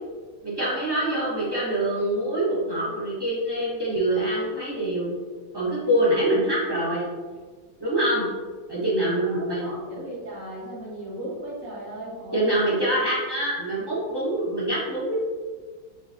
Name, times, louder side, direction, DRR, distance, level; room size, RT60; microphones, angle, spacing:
voice 1, 0.4-5.1 5.5-7.1 7.8-8.3 8.7-9.7 12.3-15.1, right 1 dB, 15° right, -9 dB, 1.3 m, -25 dB
voice 2, 9.2-12.6, right 1 dB, 50° right, -7 dB, 1.7 m, -37 dB
6.0 x 3.1 x 2.7 m, 1.4 s
omnidirectional pair, 2.0 m